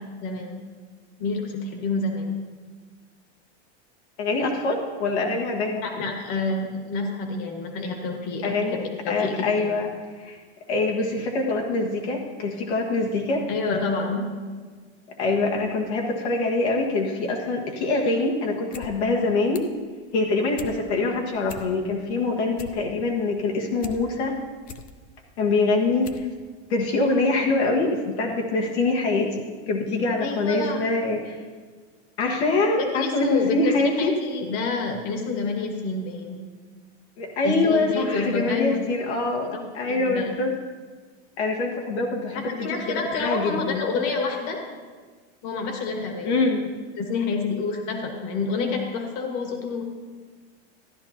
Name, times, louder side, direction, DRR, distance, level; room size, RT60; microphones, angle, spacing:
voice 1, 0.2-0.6 1.2-2.4 5.8-9.7 13.5-14.2 30.2-30.9 32.8-36.4 37.4-38.8 39.5-39.6 39.9-40.4 42.3-44.6 45.4-46.4 47.0-49.8, left 4 dB, 55° left, 2 dB, 1.8 m, -28 dB
voice 2, 4.2-5.8 8.4-8.8 9.1-9.9 10.1-10.4 10.7-13.5 15.2-19.6 20.1-24.4 25.4-26.3 26.7-31.4 32.2-34.1 37.2-40.5 41.4-43.9 46.2-46.7, left 3 dB, 85° left, 0 dB, 1.7 m, -24 dB
sound 1, 18.5-18.9 19.2-19.8 20.2-20.8 21.1-21.2 21.4-22.0 22.3-24.0 24.4-24.9 25.5-25.6 26.0-26.3 26.6-26.7, left 5 dB, 25° left, 0.5 m, -41 dB
14.0 x 11.0 x 2.9 m, 1.5 s
supercardioid pair, 150°, 33 cm